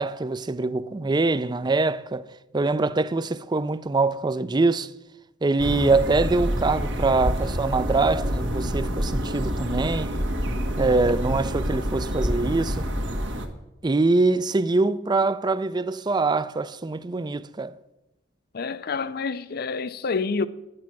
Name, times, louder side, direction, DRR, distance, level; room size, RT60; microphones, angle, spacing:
voice 1, 0.0-4.9 5.4-10.1 10.8-12.9 13.8-17.8, right 3 dB, 25° right, 0.4 m, -24 dB
sound 1, 5.6-13.5, equal, 75° right, 1.5 m, -27 dB
voice 2, 18.5-20.5, left 4 dB, 55° left, 0.5 m, -28 dB
10.5 x 9.6 x 6.0 m
head